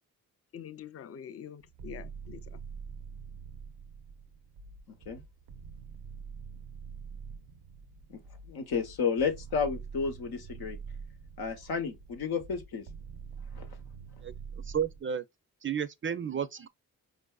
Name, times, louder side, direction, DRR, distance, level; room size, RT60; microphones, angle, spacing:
voice 1, 0.5-2.6, left 8 dB, 40° left, 0.4 m, -45 dB
sound 1, 1.6-15.0, right 6 dB, 80° right, 0.6 m, -45 dB
voice 2, 8.5-10.8 11.4-12.8 13.6-13.7, left 5 dB, 85° left, 0.8 m, -32 dB
voice 3, 14.7-15.2 15.6-16.7, right 8 dB, 35° right, 0.4 m, -32 dB
4.5 x 2.5 x 2.3 m
cardioid pair, 60°, 37 cm